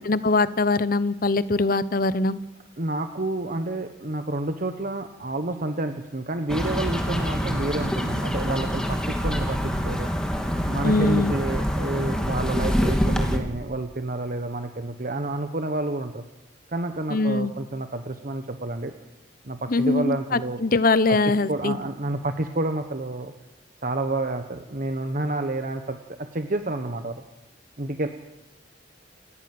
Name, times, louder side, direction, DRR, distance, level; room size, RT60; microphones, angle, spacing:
voice 1, 0.0-2.4 10.8-11.3 17.1-17.5 19.7-21.8, left 3 dB, 50° left, 16 dB, 0.9 m, -22 dB
voice 2, 2.8-10.1 10.7-16.2 16.7-18.9 19.4-20.6 21.1-21.2 21.5-23.3 23.8-27.2 27.8-28.1, right 2 dB, 50° right, 7 dB, 1.3 m, -29 dB
sound 1, 6.5-13.4, equal, 5° left, 2.6 m, -25 dB
29.0 x 14.5 x 7.8 m, 1.0 s
head